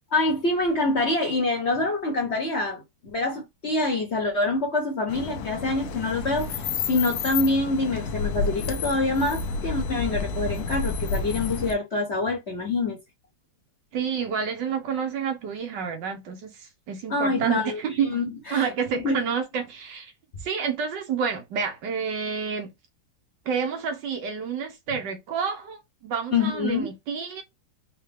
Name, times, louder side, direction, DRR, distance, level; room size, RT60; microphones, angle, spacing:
voice 1, 0.1-2.8 3.1-6.5 6.9-13.0 17.1-18.7 19.0-19.2 26.3-26.9, left 2 dB, 45° left, 1.0 m, -26 dB
sound 1, 5.1-11.7, left 5 dB, 70° left, 1.0 m, -30 dB
voice 2, 13.9-18.2 18.5-20.1 20.4-22.7 23.4-27.4, right 6 dB, 70° right, 1.4 m, -29 dB
4.4 x 2.3 x 3.4 m
omnidirectional pair, 2.1 m